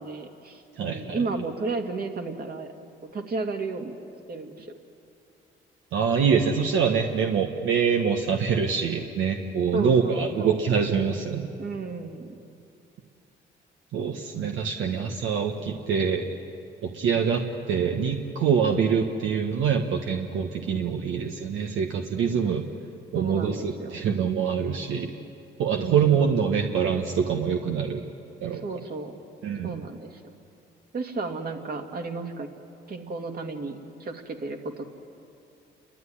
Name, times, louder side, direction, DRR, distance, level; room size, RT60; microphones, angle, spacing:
voice 1, 0.0-2.7 3.1-4.0 4.3-4.7 9.7-10.6 11.6-12.4 23.1-24.0 25.7-26.4 28.5-29.2 29.6-30.3 30.9-32.5 32.9-34.9, right 3 dB, 50° right, 4 dB, 2.3 m, -33 dB
voice 2, 0.8-1.2 5.9-11.5 13.9-16.2 16.8-17.4 17.7-22.7 23.1-25.1 25.6-28.0 28.4-28.6 29.4-29.8, right 6 dB, 80° right, 3 dB, 1.3 m, -25 dB
29.5 x 12.5 x 9.8 m, 2.7 s
cardioid pair, 90°, 20 cm